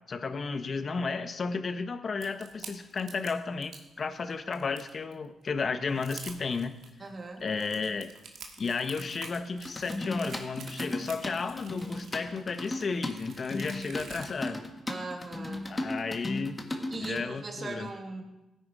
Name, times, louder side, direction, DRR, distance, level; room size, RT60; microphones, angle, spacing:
voice 1, 0.1-6.7 7.4-8.1 8.6-14.6 15.7-16.5 17.0-17.9, left 4 dB, 50° left, 9 dB, 1.2 m, -33 dB
sound 1, 2.2-3.9 4.3-5.1 5.6-5.7 5.9-6.9 7.4-14.5, right 5 dB, 70° right, 2.1 m, -47 dB
voice 2, 7.0-7.5 14.9-15.7 16.9-18.2, right 3 dB, 40° right, 1 dB, 2.9 m, -39 dB
sound 2, 9.6-17.2, left 2 dB, 20° left, 2.0 m, -36 dB
16.5 x 9.5 x 4.9 m, 0.99 s
supercardioid pair, 60°, 0 cm